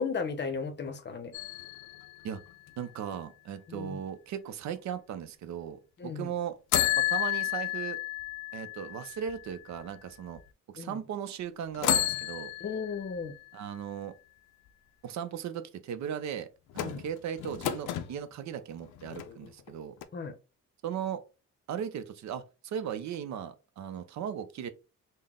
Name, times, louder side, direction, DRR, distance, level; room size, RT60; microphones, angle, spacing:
voice 1, 0.0-1.3 3.7-4.0 6.0-6.3 10.8-11.0 12.6-13.3 16.8-17.0 20.1-20.3, left 5 dB, 35° left, 0.7 m, -35 dB
sound 1, 1.3-3.2 6.7-9.8 10.4-10.5 11.7-13.5 16.7-18.1 18.8-19.7 20.0-20.1, left 12 dB, 85° left, 0.5 m, -32 dB
voice 2, 2.8-6.6 7.0-8.0 8.5-10.4 10.7-12.5 13.5-14.1 15.0-16.5 16.7-19.9 20.8-21.2 21.7-24.7, right 9 dB, 65° right, 0.6 m, -37 dB
3.8 x 2.1 x 3.5 m
cardioid pair, 90°, 30 cm